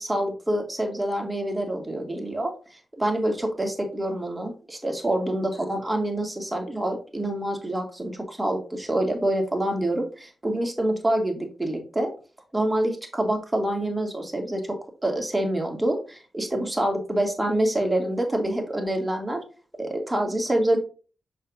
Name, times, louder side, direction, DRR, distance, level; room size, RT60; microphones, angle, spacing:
voice 1, 0.0-12.1 12.5-14.8 15.0-19.4 19.8-20.8, right 1 dB, 20° right, 2 dB, 2.5 m, -26 dB
6.5 x 5.6 x 2.6 m, 0.36 s
cardioid pair, 45°, 0 cm